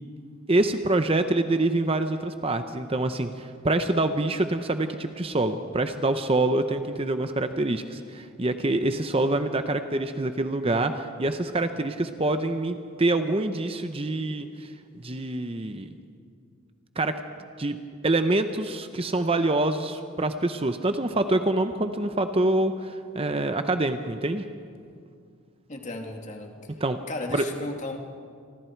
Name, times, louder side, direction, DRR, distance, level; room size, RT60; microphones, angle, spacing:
voice 1, 0.5-15.9 17.0-17.1 17.6-17.8 18.0-24.4 26.8-27.0 27.3-27.4, right 2 dB, 25° right, 8 dB, 0.8 m, -26 dB
voice 2, 25.7-26.5 27.1-28.0, left 2 dB, 35° left, 3 dB, 2.3 m, -35 dB
28.5 x 25.0 x 4.6 m, 2.3 s
head